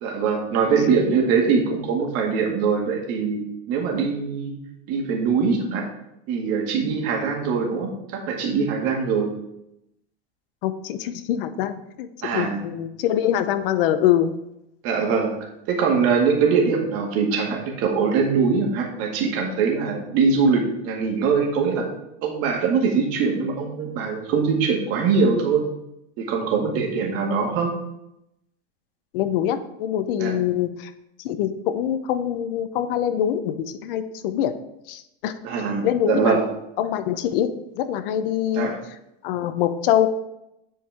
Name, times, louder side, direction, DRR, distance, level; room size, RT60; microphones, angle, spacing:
voice 1, 0.0-4.5 4.9-5.9 6.3-9.3 12.2-12.6 14.8-15.3 15.7-21.9 22.2-25.6 26.2-27.8 30.2-30.4 35.4-36.4 38.5-38.8, right 5 dB, 55° right, 1 dB, 2.0 m, -22 dB
voice 2, 10.6-14.3 29.1-30.9 31.2-34.5 34.9-35.4 35.8-36.4 36.8-37.5 37.8-38.7 39.2-40.1, left 10 dB, 65° left, 11 dB, 0.8 m, -24 dB
9.8 x 4.8 x 3.5 m, 0.84 s
supercardioid pair, 120°, 29 cm